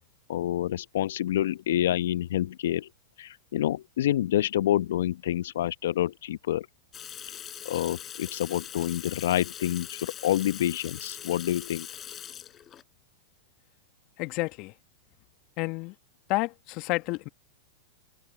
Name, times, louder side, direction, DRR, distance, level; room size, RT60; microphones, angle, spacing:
voice 1, 0.3-2.9 3.2-6.7 7.6-11.9, left 12 dB, 70° left, 1.0 m, -27 dB
Water tap faucet / Sink (filling or washing), 6.9-12.8, left 10 dB, 30° left, 5.1 m, -42 dB
voice 2, 14.2-14.7 15.6-15.9 16.3-17.3, left 23 dB, 45° left, 1.4 m, -30 dB
hypercardioid pair, 100°, 0 cm